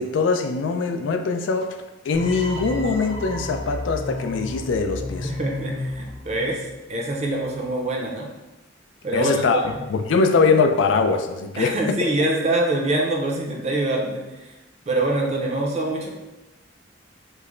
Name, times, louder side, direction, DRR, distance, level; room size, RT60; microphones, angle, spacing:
voice 1, 0.0-1.7 2.1-5.3 9.1-9.6 9.9-12.0, left 4 dB, 75° left, 5 dB, 0.3 m, -22 dB
sound 1, 2.1-7.2, left 1 dB, 25° left, 0.6 m, -33 dB
voice 2, 5.2-8.3 9.0-9.8 11.6-14.5 14.9-16.1, right 2 dB, 35° right, 0 dB, 0.5 m, -25 dB
3.1 x 2.1 x 3.7 m, 1.0 s
head